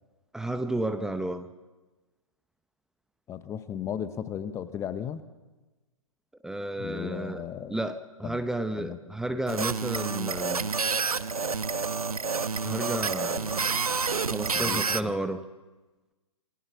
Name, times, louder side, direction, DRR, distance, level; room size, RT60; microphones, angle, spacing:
voice 1, 0.3-1.5 6.4-7.4 7.7-10.7 12.6-13.6 14.3-15.4, right 1 dB, 5° right, 9 dB, 0.8 m, -32 dB
voice 2, 3.3-5.2 6.8-7.8 8.2-8.4 8.7-9.0 14.5-15.1, left 9 dB, 15° left, 12 dB, 1.0 m, -35 dB
sound 1, 9.5-15.0, right 4 dB, 85° right, 1.0 m, -29 dB
28.0 x 22.0 x 6.0 m, 1.2 s
figure-of-eight pair, 130°, 18 cm